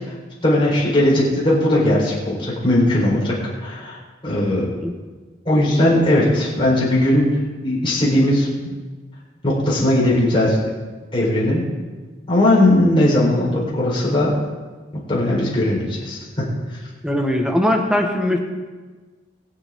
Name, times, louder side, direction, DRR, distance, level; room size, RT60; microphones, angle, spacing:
voice 1, 0.4-4.0 4.2-4.7 5.5-8.7 9.4-10.6 11.1-11.6 12.3-14.3 15.1-16.5, left 1 dB, 30° left, -5 dB, 4.1 m, -18 dB
voice 2, 17.0-18.4, left 1 dB, 5° right, 2 dB, 1.3 m, -20 dB
22.5 x 8.0 x 3.7 m, 1.4 s
head